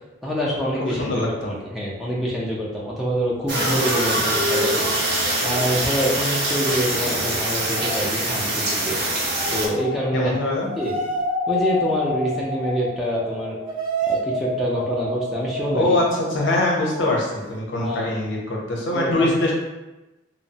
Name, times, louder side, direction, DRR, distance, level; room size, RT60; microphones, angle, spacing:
voice 1, 0.2-5.0 5.4-9.0 9.5-10.4 10.8-11.0 11.5-13.6 14.1-16.0 17.8-18.1 18.9-19.3, equal, ahead, -6 dB, 0.4 m, -26 dB
voice 2, 1.0-1.5 10.1-10.7 15.7-19.5, left 2 dB, 60° left, -2 dB, 0.6 m, -23 dB
sound 1, 3.5-9.7, right 1 dB, 50° right, 0.6 m, -23 dB
sound 2, 9.3-17.5, equal, 70° right, 1.1 m, -29 dB
2.9 x 2.0 x 2.6 m, 1.0 s
head